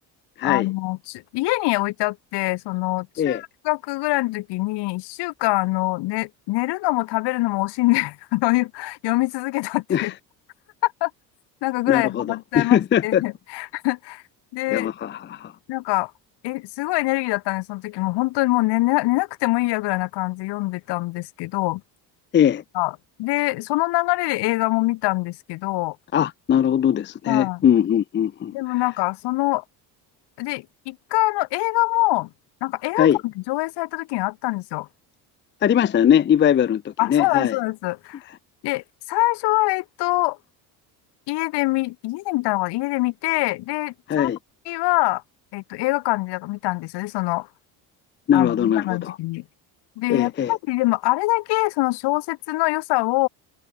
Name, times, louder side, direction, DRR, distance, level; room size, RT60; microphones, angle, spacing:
voice 1, 0.4-10.1 10.8-11.1 11.6-14.2 14.5-14.9 15.7-16.1 16.4-21.8 22.7-22.9 23.2-26.0 27.3-27.6 28.5-29.6 30.4-32.3 32.6-34.9 37.0-38.2 38.6-40.4 41.3-44.3 44.7-45.2 45.5-47.5 48.3-49.4 50.0-53.3, left 21 dB, 75° left, 3.0 m, -24 dB
voice 2, 11.9-13.2 14.7-15.5 22.3-22.6 26.1-28.5 33.0-33.2 35.6-37.5 44.1-44.4 48.3-49.2 50.1-50.5, left 9 dB, 30° left, 0.5 m, -20 dB
cardioid pair, 105°, 41 cm